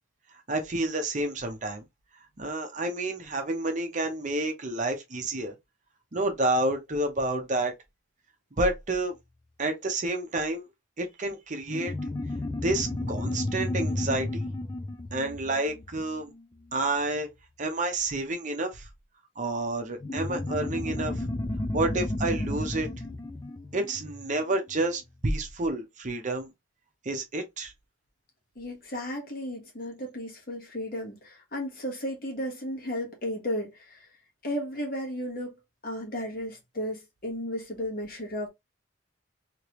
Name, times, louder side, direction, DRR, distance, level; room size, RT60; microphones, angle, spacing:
voice 1, 0.5-1.8 2.4-5.5 6.1-7.7 8.6-9.1 9.6-10.7 11.0-11.9 12.6-14.4 15.1-16.3 16.7-17.3 17.6-18.9 19.4-21.2 21.7-22.9 23.7-26.5 27.0-27.7, right 2 dB, 35° right, 0.7 m, -29 dB
sound 1, 11.7-16.6 20.0-24.9, left 1 dB, 20° left, 0.3 m, -33 dB
voice 2, 28.5-34.1 34.4-35.6 35.8-38.5, equal, 45° left, 1.3 m, -34 dB
3.2 x 2.9 x 2.9 m
head